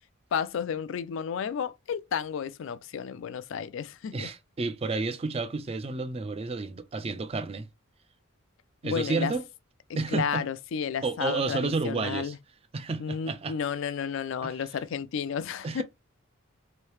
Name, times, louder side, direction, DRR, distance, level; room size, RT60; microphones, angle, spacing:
voice 1, 0.3-4.3 8.8-9.3 9.9-12.4 13.0-15.8, left 7 dB, 60° left, 0.3 m, -32 dB
voice 2, 4.1-7.7 8.8-9.4 10.0-10.4 11.0-12.3 12.7-13.6 14.4-14.5 15.6-15.8, right 3 dB, 30° right, 0.4 m, -31 dB
3.2 x 2.7 x 3.1 m
head